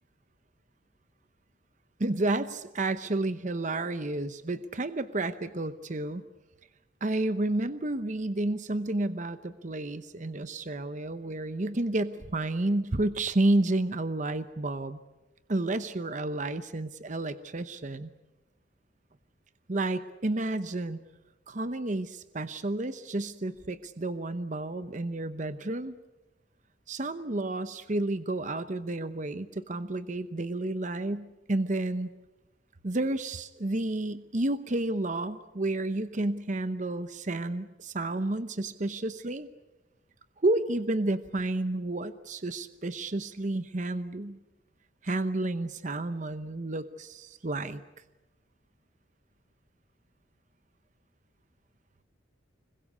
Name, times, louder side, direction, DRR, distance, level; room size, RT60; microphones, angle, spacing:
voice 1, 2.0-6.2 7.0-15.0 15.5-18.1 19.7-21.0 21.5-25.9 26.9-32.1 32.8-39.5 40.4-44.4 45.0-47.8, right 2 dB, 40° right, 12 dB, 0.8 m, -31 dB
25.5 x 21.5 x 8.3 m, 1.0 s
head